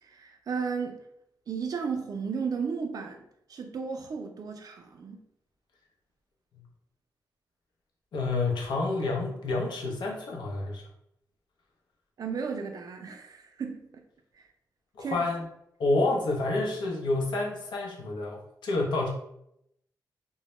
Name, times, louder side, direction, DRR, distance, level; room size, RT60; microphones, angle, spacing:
voice 1, 0.0-1.0 1.5-3.2 3.5-5.2 12.2-14.0 14.3-14.5 15.0-15.3, right 5 dB, 55° right, 0.4 m, -34 dB
voice 2, 8.1-10.8 15.0-15.4 15.8-19.1, left 2 dB, 85° left, 0.6 m, -29 dB
2.1 x 2.0 x 2.9 m
cardioid pair, 90°, 8 cm